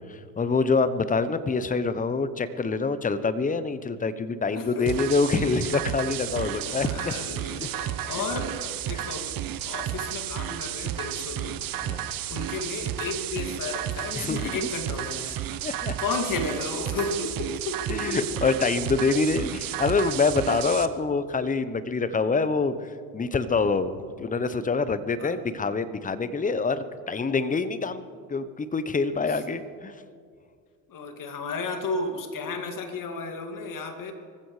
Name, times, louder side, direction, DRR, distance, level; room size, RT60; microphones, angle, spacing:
voice 1, 0.1-7.1 7.6-7.7 8.0-8.2 8.9-9.1 11.8-12.1 14.2-14.7 15.6-16.0 17.9-22.9 23.1-28.0 28.3-29.9, left 4 dB, 15° left, 13 dB, 0.9 m, -26 dB
voice 2, 4.5-5.1 6.4-9.4 9.7-11.6 12.3-15.4 16.0-18.2 25.2-25.4 29.2-29.4 30.9-34.1, left 3 dB, 45° left, 4 dB, 2.5 m, -33 dB
sound 1, 4.9-20.9, right 11 dB, 45° right, 1.0 m, -32 dB
24.5 x 15.0 x 3.3 m, 2.1 s
hypercardioid pair, 70°, 47 cm